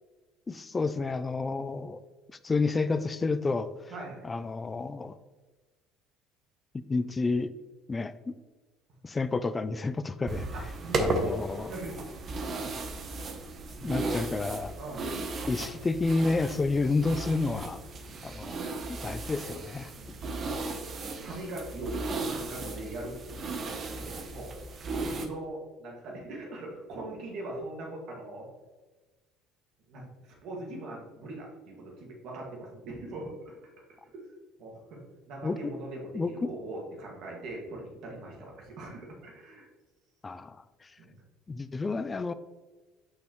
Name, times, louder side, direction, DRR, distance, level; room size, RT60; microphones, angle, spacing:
voice 1, 0.5-2.0 2.4-3.7 4.2-5.2 6.9-7.5 7.9-8.4 9.0-10.5 11.0-11.8 13.8-14.8 15.5-17.8 18.2-19.9 35.4-35.8 36.1-36.5 40.2-40.6 40.8-40.9 41.5-42.3, left 3 dB, 20° left, 14 dB, 0.3 m, -30 dB
voice 2, 3.9-4.3 6.9-7.1 10.5-12.0 12.5-12.7 13.7-14.4 14.8-15.1 16.5-16.6 18.0-18.2 19.9-20.1 20.4-20.8 21.2-23.1 23.4-24.5 25.0-28.5 29.9-30.1 30.4-33.7 34.0-34.2 34.6-39.7 41.0-41.2, right 2 dB, 60° right, -1 dB, 1.8 m, -41 dB
sound 1, 10.3-25.3, right 3 dB, 35° right, 0.8 m, -35 dB
6.4 x 5.6 x 3.1 m, 1.3 s
cardioid pair, 125°, 0 cm